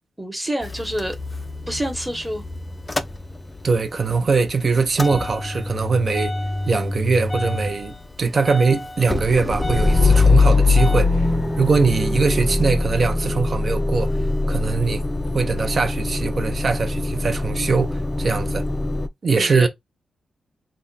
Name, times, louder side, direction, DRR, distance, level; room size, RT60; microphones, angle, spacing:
voice 1, 0.2-1.2 1.7-2.4 19.3-19.7, right 1 dB, 10° right, 1.1 m, -27 dB
Motor vehicle (road) / Engine starting / Idling, 0.6-3.8 4.1-19.1, left 3 dB, 15° left, 0.4 m, -22 dB
voice 2, 3.6-6.3 6.7-11.3 11.6-14.1 14.5-15.0 15.3-18.7 19.2-19.7, right 4 dB, 45° right, 0.6 m, -21 dB
3.5 x 2.2 x 3.9 m
wide cardioid pair, 110°, 0 cm